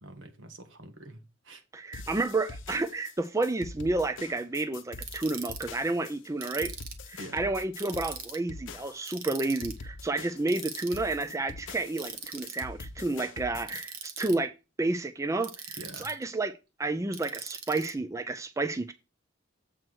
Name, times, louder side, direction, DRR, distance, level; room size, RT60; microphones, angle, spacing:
voice 1, 0.0-1.6 1.9-2.1 7.2-7.5 15.8-16.1, right 1 dB, 70° right, 1.6 m, -46 dB
voice 2, 1.7-6.7 7.1-14.5 14.8-16.5 16.8-18.9, right 2 dB, 15° right, 0.4 m, -30 dB
sound 1, 1.9-13.8, left 3 dB, 70° left, 0.8 m, -44 dB
Ratchet pawl, 5.0-5.6 6.4-7.1 7.8-8.4 9.1-9.8 10.5-11.0 12.0-12.6 13.7-14.4 15.4-16.2 17.1-17.9, right 6 dB, 50° right, 1.3 m, -41 dB
7.6 x 4.5 x 6.2 m
head